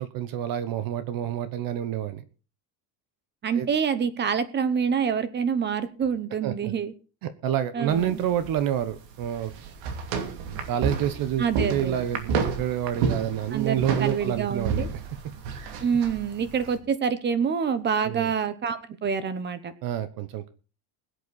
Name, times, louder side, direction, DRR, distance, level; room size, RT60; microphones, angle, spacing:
voice 1, 0.0-2.2 3.5-3.7 6.4-6.7 7.2-9.5 10.7-15.0 18.0-18.3 19.8-20.5, right 10 dB, 45° right, 12 dB, 1.1 m, -28 dB
voice 2, 3.4-6.9 7.7-8.2 11.4-12.0 13.5-14.9 15.8-19.7, right 7 dB, 20° right, 13 dB, 0.9 m, -26 dB
sound 1, 7.9-16.8, right 5 dB, 65° right, 2.8 m, -31 dB
21.5 x 8.2 x 4.1 m, 0.35 s
cardioid pair, 180°, 49 cm